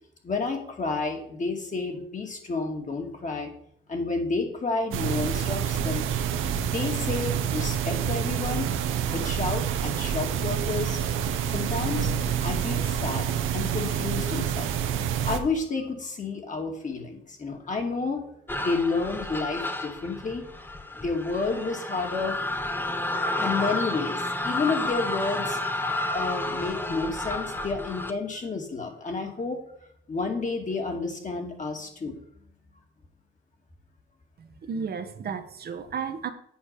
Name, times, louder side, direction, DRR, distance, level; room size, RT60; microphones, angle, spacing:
voice 1, 0.2-3.5 3.9-6.0 6.6-8.7 9.1-11.0 11.5-12.1 12.4-14.7 15.2-18.2 18.6-20.4 20.9-22.4 23.4-24.2 24.4-25.6 26.1-29.6 30.1-32.2, left 3 dB, 40° left, 2 dB, 2.4 m, -30 dB
sound 1, 4.9-15.4, right 8 dB, 90° right, 1.0 m, -27 dB
sound 2, 18.5-28.1, left 2 dB, 10° left, 0.9 m, -31 dB
voice 2, 34.4-36.3, right 6 dB, 50° right, 7 dB, 1.1 m, -33 dB
8.7 x 4.8 x 7.4 m, 0.68 s
cardioid pair, 90°, 20 cm